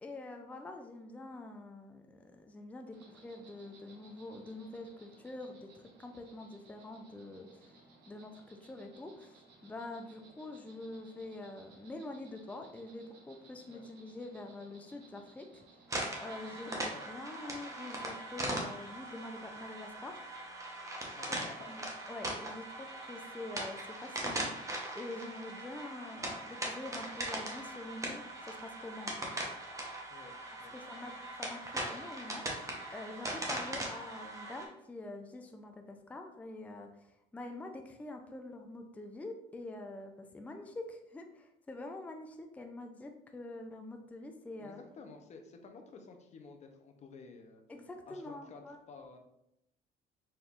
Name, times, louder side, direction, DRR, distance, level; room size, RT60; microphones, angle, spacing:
voice 1, 0.0-7.8 8.1-15.6 16.2-16.8 17.1-20.2 21.5-21.8 22.1-24.5 24.9-29.3 30.7-31.1 31.4-44.8 47.7-48.8, left 2 dB, 10° left, 4 dB, 0.4 m, -46 dB
Insect, 2.9-16.8, right 2 dB, 85° right, 1.0 m, -60 dB
sound 1, 15.9-34.7, right 1 dB, 20° right, 0.9 m, -40 dB
voice 2, 16.4-17.1 21.1-21.9 30.1-30.3 30.6-30.7 31.0-31.1 44.6-47.6 48.1-48.6 48.9-49.2, left 4 dB, 40° left, 5 dB, 0.7 m, -52 dB
4.3 x 3.4 x 2.4 m, 0.82 s
cardioid pair, 110°, 17 cm